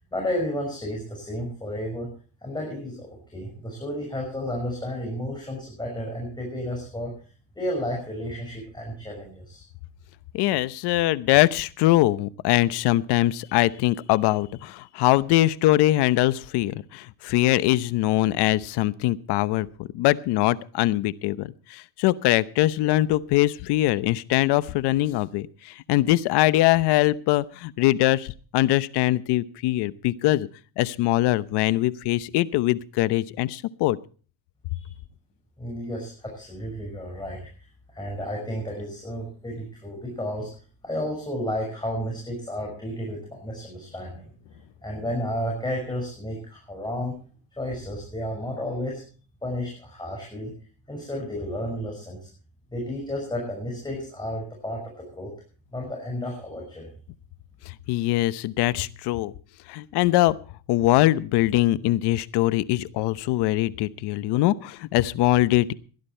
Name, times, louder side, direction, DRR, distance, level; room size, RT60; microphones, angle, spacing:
voice 1, 0.1-2.1 2.4-7.1 7.6-9.6 34.7-34.9 35.6-37.4 37.9-40.5 40.8-44.3 44.8-47.2 47.6-49.0 49.4-50.5 50.9-52.3 52.7-55.3 55.7-56.9, equal, 10° left, -1 dB, 5.8 m, -32 dB
voice 2, 10.3-30.5 30.8-34.0 57.7-59.3 59.7-60.4 60.7-65.7, left 16 dB, 75° left, 16 dB, 0.9 m, -22 dB
17.0 x 12.0 x 4.4 m, 0.40 s
cardioid pair, 115°, 41 cm